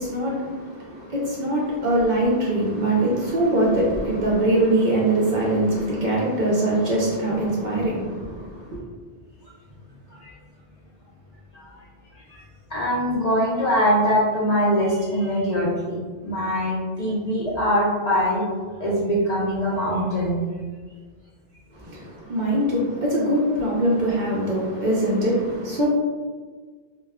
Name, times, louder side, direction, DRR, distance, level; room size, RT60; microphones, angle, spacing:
voice 1, 0.0-8.8 21.7-25.9, right 1 dB, 55° right, -4 dB, 0.6 m, -23 dB
voice 2, 12.7-18.5 18.8-20.4, equal, 55° left, -7 dB, 0.4 m, -23 dB
2.3 x 2.1 x 3.4 m, 1.5 s
omnidirectional pair, 1.1 m